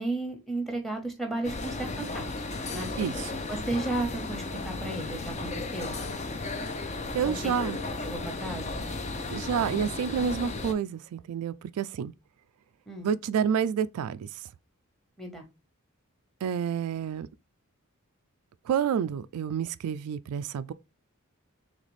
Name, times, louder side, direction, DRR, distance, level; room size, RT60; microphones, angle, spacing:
voice 1, 0.0-2.2 2.7-2.9 3.5-6.0 7.2-7.3 8.0-8.9 12.9-13.1 15.2-15.4, right 2 dB, ahead, 1.0 m, -33 dB
sound 1, 1.4-10.7, left 3 dB, 30° left, 0.6 m, -35 dB
voice 2, 3.0-3.3 7.1-7.8 9.3-12.1 13.0-14.3 16.4-17.3 18.7-20.7, right 7 dB, 90° right, 0.3 m, -29 dB
4.0 x 3.4 x 3.1 m
head